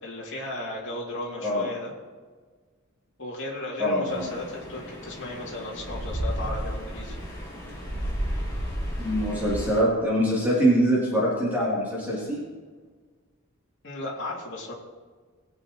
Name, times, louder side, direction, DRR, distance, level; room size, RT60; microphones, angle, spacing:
voice 1, 0.0-1.9 3.2-7.2 13.8-14.7, left 1 dB, 55° left, -4 dB, 2.8 m, -35 dB
voice 2, 3.8-4.3 9.0-12.4, equal, 10° right, -9 dB, 3.2 m, -24 dB
sound 1, 4.1-9.8, equal, 20° left, 3.0 m, -33 dB
21.5 x 8.3 x 3.1 m, 1.5 s
head